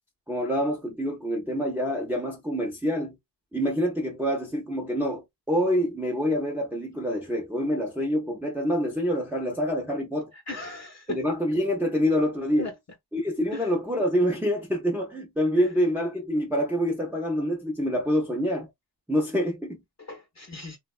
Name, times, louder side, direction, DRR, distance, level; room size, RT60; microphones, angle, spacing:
voice 1, 0.3-3.2 3.5-10.3 11.1-12.7 13.1-18.7 19.1-19.8, equal, 5° right, 0.5 m, -26 dB
voice 2, 10.3-11.2 12.6-12.7 13.5-13.7 20.0-20.8, left 3 dB, 40° left, 0.7 m, -37 dB
3.3 x 2.1 x 2.3 m
wide cardioid pair, 155°, 42 cm